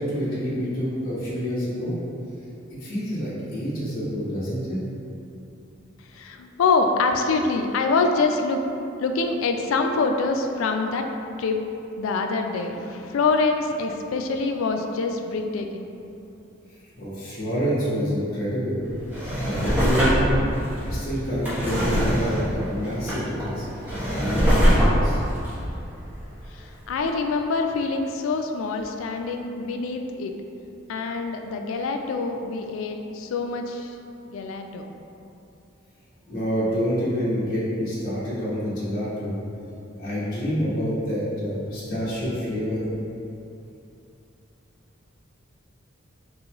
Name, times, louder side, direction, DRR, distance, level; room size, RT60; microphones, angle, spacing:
voice 1, 0.0-1.9 2.8-4.8 16.9-18.8 19.4-20.5 20.8-23.6 24.1-25.2 36.3-39.3 39.9-42.9, equal, 45° left, -10 dB, 1.0 m, -27 dB
voice 2, 6.1-8.6 9.0-11.6 12.0-15.9 26.5-30.3 30.9-33.9 34.3-34.8, left 4 dB, 80° left, 4 dB, 0.3 m, -25 dB
Drawer open or close, 18.9-26.6 27.0-27.1, equal, 10° right, 0.8 m, -23 dB
3.8 x 2.9 x 2.9 m, 2.8 s
head